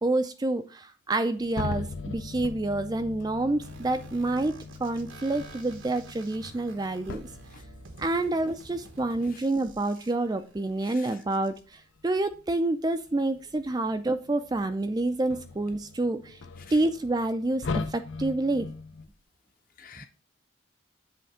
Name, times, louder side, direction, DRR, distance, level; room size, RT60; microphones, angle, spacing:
voice 1, 0.0-7.2 8.0-16.4 16.7-18.7, right 2 dB, 20° right, 0.3 m, -28 dB
sound 1, 1.4-9.2 9.7-9.8 11.7-12.4 13.1-14.7 15.0-19.1, left 4 dB, 75° left, 0.6 m, -40 dB
sound 2, 3.6-11.6, right 3 dB, 90° right, 1.1 m, -50 dB
voice 2, 7.1-7.2 10.9-11.1 16.6-16.7 19.8-20.1, left 6 dB, 45° left, 0.8 m, -47 dB
7.7 x 3.3 x 4.9 m
head